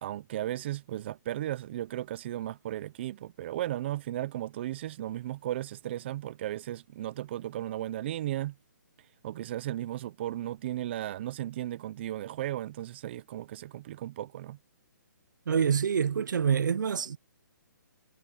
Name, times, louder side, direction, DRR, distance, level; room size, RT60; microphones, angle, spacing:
voice 1, 0.0-8.5 9.2-14.6, right 13 dB, 35° right, 0.7 m, -35 dB
voice 2, 15.5-17.2, right 7 dB, 70° right, 0.7 m, -26 dB
hypercardioid pair, 160°, 11 cm